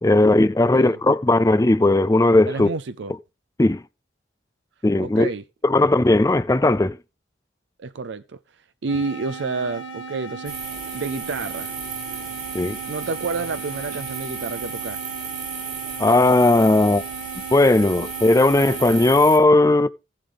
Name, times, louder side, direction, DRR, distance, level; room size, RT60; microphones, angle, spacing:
voice 1, 0.0-2.7 3.6-3.8 4.8-5.3 5.6-7.0 12.5-12.8 16.0-17.0 17.5-19.9, left 2 dB, 15° left, 0.4 m, -17 dB
voice 2, 2.5-3.1 5.0-5.4 7.8-8.4 8.8-10.6 10.9-11.7 12.9-15.0, right 4 dB, 70° right, 0.5 m, -29 dB
sound 1, 8.9-19.3, right 4 dB, 90° left, 2.0 m, -36 dB
sound 2, 10.4-19.4, right 6 dB, 40° right, 4.2 m, -35 dB
15.5 x 7.3 x 3.4 m
head